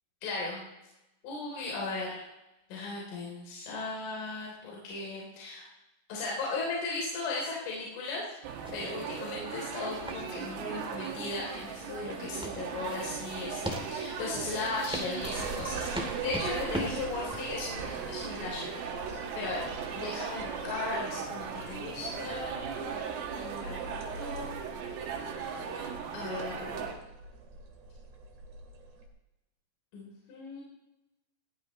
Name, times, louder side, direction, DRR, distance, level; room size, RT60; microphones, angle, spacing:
voice 1, 0.2-0.7 1.2-2.2 2.7-5.7 6.1-8.3 8.7-19.6 19.9-22.9 23.3-24.6 25.7-25.8 26.1-26.8 29.9-30.6, left 3 dB, 75° left, -3 dB, 6.0 m, -37 dB
sound 1, 8.4-26.9, right 6 dB, 90° right, 4.7 m, -38 dB
sound 2, 8.5-21.1, equal, ahead, 1.4 m, -41 dB
sound 3, 15.2-29.1, right 4 dB, 45° right, 2.6 m, -44 dB
20.5 x 17.5 x 3.2 m, 0.95 s
omnidirectional pair, 5.7 m